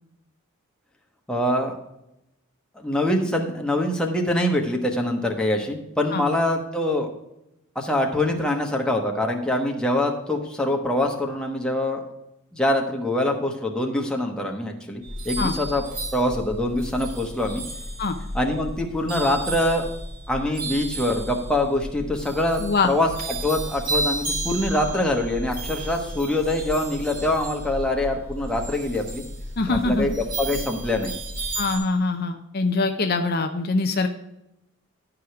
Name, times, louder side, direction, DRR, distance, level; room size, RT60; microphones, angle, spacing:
voice 1, 1.3-1.7 2.8-7.1 7.7-12.0 12.5-15.8 16.1-17.6 18.3-19.9 20.3-23.1 23.4-29.2 29.7-31.1, left 1 dB, 5° left, 1 dB, 1.1 m, -24 dB
sound 1, 15.0-31.8, right 1 dB, 40° right, 3.0 m, -33 dB
voice 2, 22.6-22.9 29.6-30.1 31.6-34.1, left 3 dB, 45° left, 6 dB, 0.6 m, -23 dB
11.0 x 4.9 x 5.8 m, 0.87 s
head